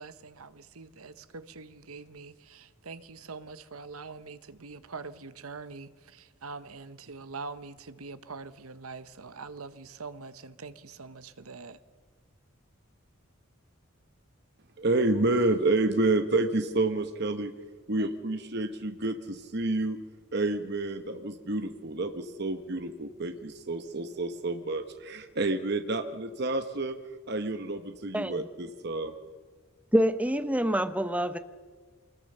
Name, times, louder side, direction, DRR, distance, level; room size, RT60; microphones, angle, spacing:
voice 1, 0.0-11.8, right 4 dB, 90° right, 1.1 m, -44 dB
voice 2, 14.8-17.5 17.9-20.0 20.3-26.9 27.3-29.1, right 2 dB, 50° right, 1.1 m, -29 dB
voice 3, 28.1-28.5 29.9-31.4, equal, 5° right, 0.9 m, -26 dB
25.0 x 21.0 x 6.7 m
head